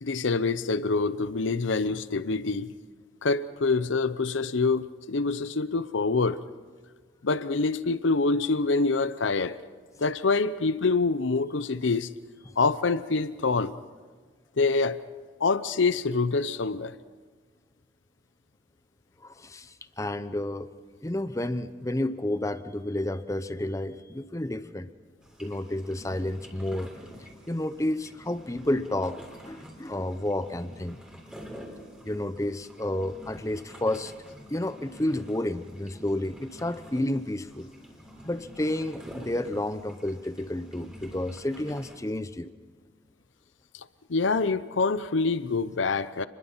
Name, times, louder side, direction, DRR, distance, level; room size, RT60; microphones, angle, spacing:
voice 1, 0.0-2.7 3.2-6.4 7.2-9.6 10.0-12.1 12.6-13.7 14.6-15.0 15.4-16.9 44.1-46.3, left 3 dB, 90° left, 0.7 m, -26 dB
voice 2, 19.2-20.7 21.0-24.9 25.4-26.9 27.5-29.2 29.4-31.0 32.0-34.1 34.5-37.7 38.2-42.5, left 1 dB, 15° left, 0.7 m, -31 dB
sound 1, 25.2-42.0, equal, 5° right, 3.3 m, -48 dB
28.5 x 21.5 x 5.7 m
head